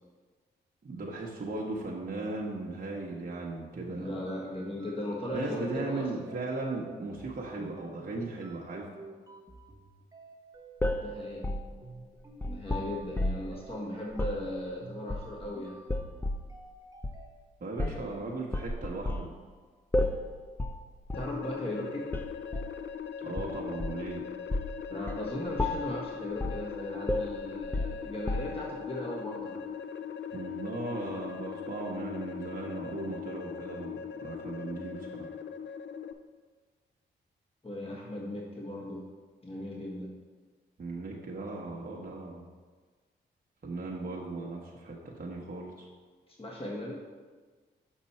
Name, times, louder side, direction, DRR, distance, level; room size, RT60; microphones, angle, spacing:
voice 1, 0.8-4.1 5.3-8.9 17.6-19.3 23.2-24.2 30.3-35.3 40.8-42.5 43.6-45.9, right 2 dB, 45° right, -3 dB, 1.1 m, -37 dB
sound 1, 3.6-17.3, right 2 dB, 20° right, 0.9 m, -51 dB
voice 2, 3.9-6.3 11.0-11.5 12.5-15.8 20.0-20.1 21.1-22.1 24.9-29.8 37.6-39.0 39.4-40.1 46.3-46.9, left 1 dB, 25° left, -3 dB, 1.5 m, -37 dB
sound 2, 10.8-13.6 14.1-14.4 15.1-15.5 15.9-16.5 17.0-17.2 17.8-18.1 18.5-19.3 19.9-20.3 20.6-20.8 21.1-21.3 22.1-22.8 23.4-24.1 24.5-24.8 25.1-25.3 25.6-26.0 26.4-26.7 27.1-28.7, left 1 dB, 10° left, 0.6 m, -32 dB
sound 3, 21.1-36.1, left 7 dB, 60° left, 0.5 m, -40 dB
6.5 x 5.3 x 4.3 m, 1.4 s
supercardioid pair, 50°, 21 cm